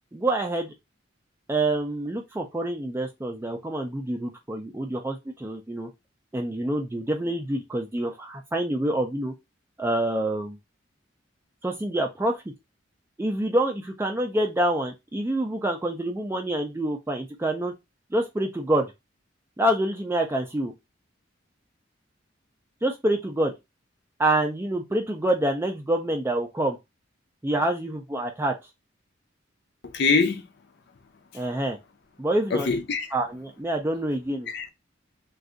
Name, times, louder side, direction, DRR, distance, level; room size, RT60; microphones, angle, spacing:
voice 1, 0.1-0.7 1.5-5.9 6.3-9.3 9.8-10.6 11.6-12.4 13.2-17.7 18.1-18.9 19.6-20.7 22.8-23.5 24.2-26.8 27.4-28.5 31.3-31.8 32.2-32.7 33.1-34.5, right 1 dB, 10° right, 0.3 m, -26 dB
voice 2, 29.8-30.5 32.5-33.1 34.5-34.7, left 4 dB, 60° left, 0.5 m, -24 dB
2.5 x 2.3 x 3.7 m
head